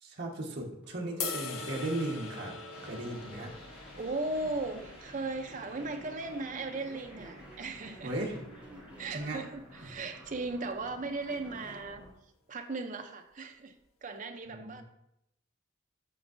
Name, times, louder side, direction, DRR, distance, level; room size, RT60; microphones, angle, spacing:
voice 1, 0.0-2.6 2.8-3.5 8.0-8.4 9.1-9.4 9.8-9.9 14.5-14.8, right 1 dB, 55° right, -2 dB, 1.3 m, -36 dB
Telephone, 0.8-3.6 4.3-4.9 5.5-9.2 11.3-11.8, right 1 dB, 5° right, 0.9 m, -52 dB
sound 1, 1.2-7.4, left 5 dB, 75° left, 0.7 m, -44 dB
Massive drop, 2.7-12.1, equal, 45° left, 2.2 m, -52 dB
voice 2, 3.9-8.1 9.0-12.0 12.5-14.8, right 3 dB, 35° right, 6 dB, 0.5 m, -37 dB
9.3 x 4.5 x 2.6 m, 0.80 s
head